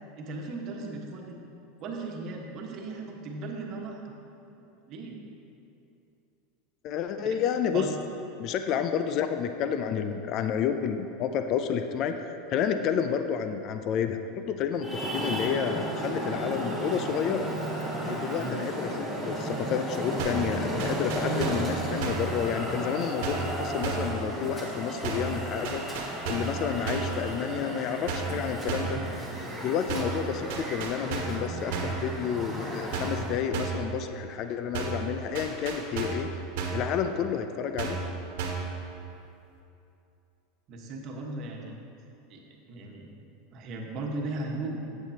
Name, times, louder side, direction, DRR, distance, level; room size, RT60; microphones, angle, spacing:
voice 1, 0.1-1.4 1.8-4.1 4.6-5.2 7.2-7.4 7.7-7.9 18.3-18.5 40.7-41.8 42.3-42.4 42.7-43.1 43.5-44.8, right 2 dB, 45° right, 0 dB, 1.3 m, -37 dB
voice 2, 6.8-7.9 8.4-14.2 14.5-17.5 18.0-25.8 26.3-29.0 29.6-36.3 36.7-38.0, left 8 dB, 50° left, 8 dB, 0.4 m, -30 dB
Traffic noise roadway noise, 14.8-33.5, right 1 dB, 5° left, 1.8 m, -34 dB
sound 1, 20.2-20.5 20.8-21.7 22.0-22.3 23.2-23.5 23.8-24.2 25.0-25.4 25.6-26.6 26.9-27.2 28.1-28.4 28.7-29.0 29.9-30.2 30.5-31.4 31.7-32.0 32.9-33.3 33.5-33.9 34.7-35.1 35.4-36.3 36.6-36.9 37.8-38.1 38.4-38.7, right 5 dB, 70° right, 1.3 m, -32 dB
10.5 x 8.3 x 2.9 m, 2.7 s
supercardioid pair, 120°, 0 cm